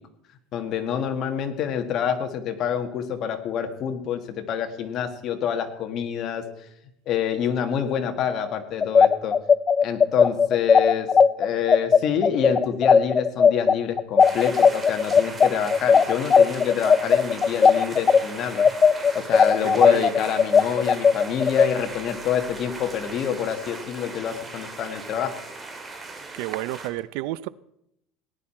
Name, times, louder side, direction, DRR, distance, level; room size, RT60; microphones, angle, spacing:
voice 1, 0.5-6.4 7.0-9.4 9.8-11.1 11.4-18.7 19.1-25.3, left 8 dB, 45° left, 1.7 m, -27 dB
sound 1, 8.8-18.2 18.6-21.7, left 6 dB, 25° left, 0.4 m, -16 dB
sound 2, 14.2-26.9, right 3 dB, 15° right, 1.9 m, -38 dB
voice 2, 19.6-20.1 26.3-27.5, right 16 dB, 75° right, 0.5 m, -30 dB
18.0 x 10.5 x 4.4 m
cardioid pair, 145°, 0 cm